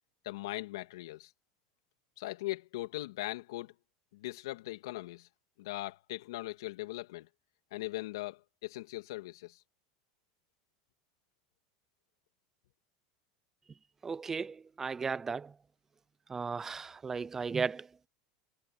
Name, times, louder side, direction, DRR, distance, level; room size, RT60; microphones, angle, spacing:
voice 1, 0.2-1.3 2.2-3.7 4.1-5.3 5.6-7.3 7.7-9.6, left 17 dB, 80° left, 2.5 m, -40 dB
voice 2, 14.0-15.5 16.3-18.1, right 5 dB, 15° right, 0.3 m, -35 dB
supercardioid pair, 120°, 2 cm